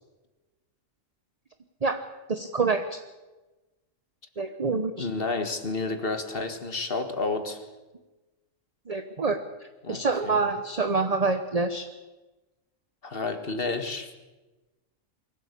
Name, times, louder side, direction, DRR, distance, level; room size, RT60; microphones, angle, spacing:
voice 1, 2.3-3.0 4.4-5.1 8.9-9.4 9.9-11.9, right 4 dB, 30° right, 8 dB, 1.1 m, -26 dB
voice 2, 5.0-7.7 9.8-10.4 13.0-14.1, left 3 dB, 45° left, 7 dB, 2.1 m, -30 dB
23.5 x 16.5 x 8.5 m, 1.2 s
omnidirectional pair, 1.3 m